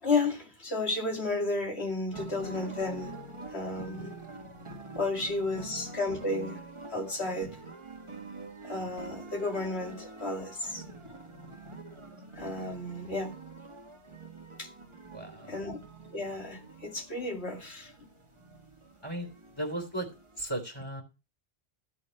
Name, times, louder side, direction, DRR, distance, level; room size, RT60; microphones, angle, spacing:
voice 1, 0.0-3.2 3.5-4.1 5.0-6.6 6.9-7.6 8.6-10.8 12.4-13.3 14.6-14.7 15.5-15.8 16.1-17.9, left 2 dB, 85° left, 2.7 m, -32 dB
sound 1, 2.1-20.4, right 3 dB, 30° right, 1.4 m, -46 dB
voice 2, 15.1-15.6 19.0-20.1 20.4-21.0, right 1 dB, 25° left, 3.4 m, -36 dB
14.0 x 8.3 x 3.3 m
omnidirectional pair, 1.1 m